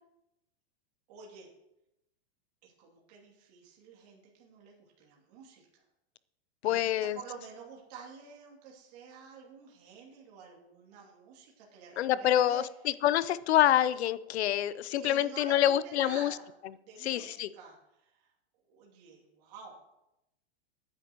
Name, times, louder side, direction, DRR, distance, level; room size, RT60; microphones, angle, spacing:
voice 1, 1.1-1.5 2.6-5.8 6.6-12.7 15.0-16.5 16.8-18.3 18.7-19.8, right 5 dB, 40° right, -2 dB, 2.6 m, -49 dB
voice 2, 6.6-7.2 12.0-16.3 17.0-17.5, left 12 dB, 85° left, 17 dB, 0.7 m, -27 dB
17.5 x 9.8 x 3.0 m, 0.88 s
supercardioid pair, 180°, 32 cm